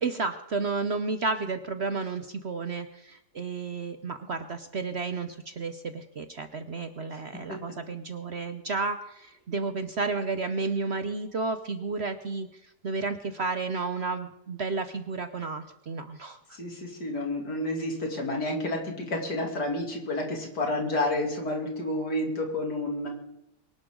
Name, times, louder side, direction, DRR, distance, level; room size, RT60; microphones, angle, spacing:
voice 1, 0.0-16.6, right 4 dB, 50° right, 9 dB, 0.9 m, -32 dB
voice 2, 16.5-23.1, left 1 dB, 75° left, 1 dB, 3.5 m, -30 dB
23.5 x 12.0 x 3.8 m, 0.85 s
omnidirectional pair, 1.8 m